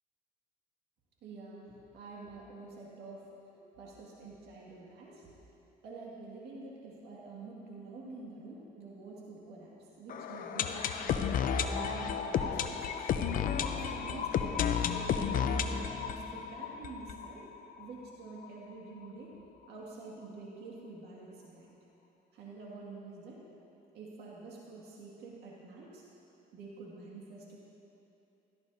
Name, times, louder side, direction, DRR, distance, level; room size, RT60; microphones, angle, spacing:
voice 1, 1.2-3.3 3.8-5.3 5.8-13.1 13.6-17.4 17.8-19.4 19.7-21.7 22.3-23.4 23.9-26.0 26.5-27.6, right 3 dB, 75° right, -4 dB, 2.1 m, -47 dB
sound 1, 10.1-17.9 18.1-18.2 18.4-18.5 19.0-19.1, left 7 dB, 55° left, 0.6 m, -32 dB
16.5 x 13.0 x 2.7 m, 2.9 s
cardioid pair, 110°, 17 cm